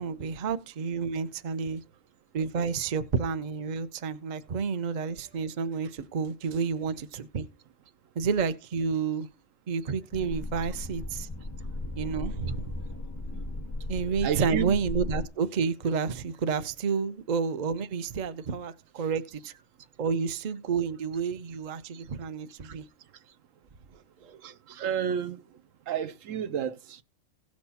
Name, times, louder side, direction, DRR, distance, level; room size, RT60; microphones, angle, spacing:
voice 1, 0.0-1.8 2.3-7.5 8.2-9.3 9.7-11.3 12.0-12.6 13.9-19.5 20.0-22.8 24.2-24.4, right 5 dB, 40° right, 0.7 m, -30 dB
sound 1, 10.1-15.3, left 2 dB, 25° left, 0.4 m, -36 dB
voice 2, 14.2-14.7 21.9-22.0 24.4-25.4 25.9-27.0, right 9 dB, 75° right, 1.1 m, -31 dB
17.0 x 6.2 x 2.8 m
omnidirectional pair, 1.4 m